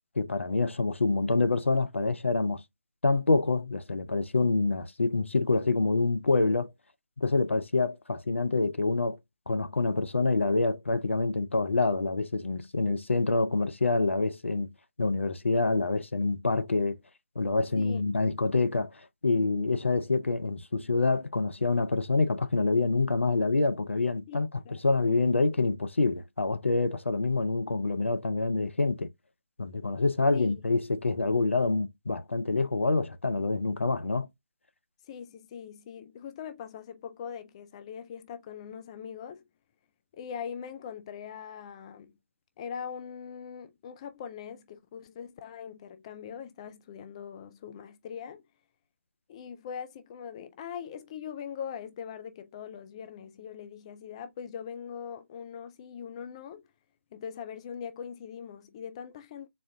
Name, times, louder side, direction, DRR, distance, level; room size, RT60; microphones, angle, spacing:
voice 1, 0.2-2.6 3.0-6.7 7.2-9.2 9.5-14.7 15.0-17.0 17.4-24.5 24.8-29.1 29.6-34.3, left 3 dB, 75° left, 0.6 m, -26 dB
voice 2, 24.3-24.8 30.3-30.6 35.0-39.5 40.1-42.2 42.6-48.4 49.3-56.7 57.1-59.5, left 7 dB, 25° left, 0.3 m, -41 dB
4.2 x 2.2 x 3.6 m
figure-of-eight pair, 140°, 7 cm